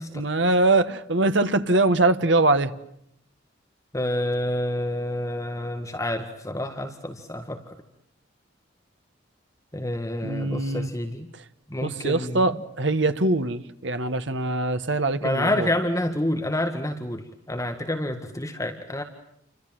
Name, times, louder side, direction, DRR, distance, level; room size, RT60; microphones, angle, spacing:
voice 1, 0.1-2.7 10.2-10.9 11.8-15.7, right 2 dB, 65° right, 1.5 m, -23 dB
voice 2, 3.9-7.7 9.7-11.3 11.7-12.5 15.2-19.0, left 1 dB, 15° left, 1.8 m, -28 dB
30.0 x 25.5 x 7.7 m
head